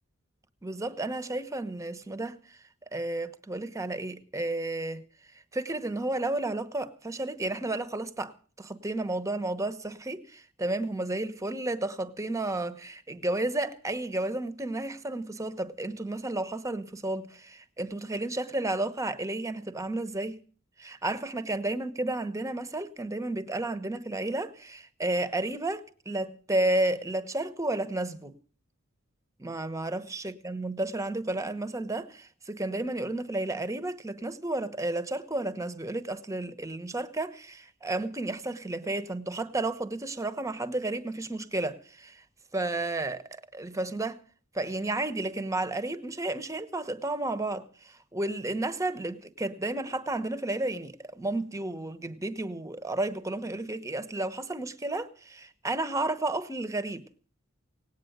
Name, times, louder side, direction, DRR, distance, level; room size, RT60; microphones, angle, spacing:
voice 1, 0.6-2.6 2.9-5.0 5.5-20.4 20.8-28.3 29.4-42.2 42.5-44.2 44.5-57.1, right 2 dB, 15° right, 1.0 m, -32 dB
18.0 x 9.2 x 7.9 m
head